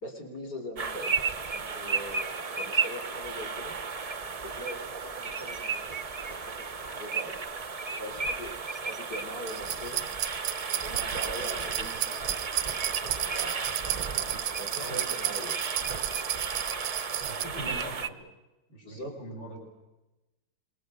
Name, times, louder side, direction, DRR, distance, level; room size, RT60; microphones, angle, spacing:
voice 1, 0.0-1.1 1.5-3.8 4.5-6.0 6.3-6.5 6.8-7.4 8.0-10.1 10.7-12.3 12.8-13.5 14.6-15.6 18.8-19.1, equal, 60° left, 5 dB, 4.2 m, -41 dB
sound 1, 0.8-18.1, right 5 dB, 60° right, 0.3 m, -34 dB
sound 2, 9.5-17.4, right 12 dB, 90° right, 1.7 m, -33 dB
voice 2, 14.7-15.0 17.2-18.2 18.7-19.6, equal, 85° left, -1 dB, 6.7 m, -42 dB
27.0 x 21.0 x 6.6 m, 1.0 s
omnidirectional pair, 2.0 m